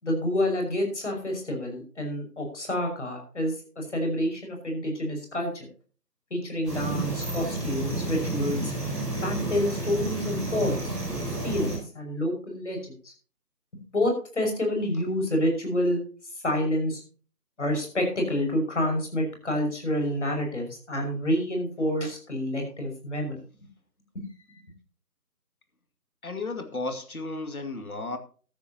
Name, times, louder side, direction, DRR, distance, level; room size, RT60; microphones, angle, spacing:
voice 1, 0.0-5.7 6.3-8.7 9.2-10.9 11.4-12.8 13.0-13.1 13.9-16.0 16.4-17.0 17.6-23.4 24.1-24.3, left 1 dB, 45° left, 5.8 m, -28 dB
sound 1, 6.6-11.8, right 2 dB, ahead, 2.2 m, -30 dB
voice 2, 26.2-28.2, left 3 dB, 65° left, 2.4 m, -33 dB
14.0 x 13.0 x 2.9 m
figure-of-eight pair, 160°, 47 cm